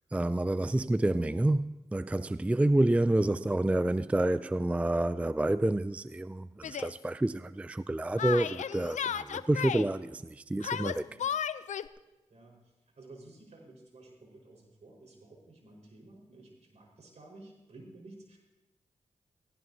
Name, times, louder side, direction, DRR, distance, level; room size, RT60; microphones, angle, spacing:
voice 1, 0.1-11.1, right 1 dB, 10° right, 0.3 m, -28 dB
Yell, 6.6-6.9 8.2-9.9 10.6-11.9, left 8 dB, 75° left, 0.5 m, -34 dB
voice 2, 12.3-18.4, right 2 dB, 65° right, 4.7 m, -53 dB
17.5 x 17.5 x 2.8 m
cardioid pair, 50°, 13 cm